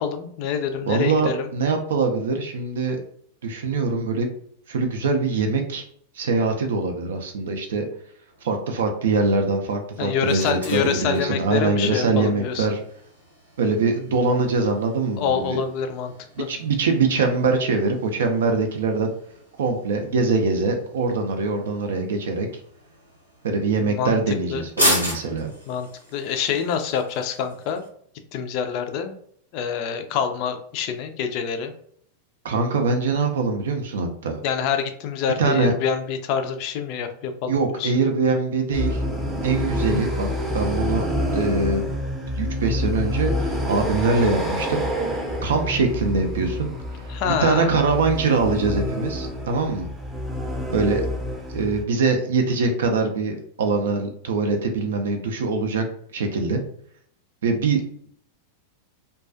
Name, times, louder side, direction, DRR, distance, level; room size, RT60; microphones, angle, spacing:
voice 1, 0.0-1.5 10.0-12.7 15.2-16.1 16.4-16.5 23.8-24.2 24.5-24.6 25.7-27.8 28.3-29.1 29.5-31.7 34.4-37.9 47.1-47.7, left 7 dB, 45° left, 7 dB, 0.3 m, -26 dB
voice 2, 0.9-3.0 3.4-4.3 4.7-5.8 6.1-7.9 8.4-12.8 13.6-15.6 16.5-19.1 19.6-22.5 23.4-25.5 32.4-34.4 35.4-35.7 37.5-39.0 39.4-40.3 40.5-41.1 41.3-41.9 42.4-44.8 45.4-46.7 47.2-49.9 50.7-51.1 51.5-55.8 56.1-56.6 57.4-57.9, right 4 dB, 60° right, 4 dB, 0.3 m, -23 dB
sound 1, 8.3-27.9, equal, 85° right, 0.7 m, -35 dB
sound 2, 38.7-51.8, left 1 dB, 10° right, 0.5 m, -27 dB
2.3 x 2.2 x 2.4 m, 0.64 s
figure-of-eight pair, 90°, 0 cm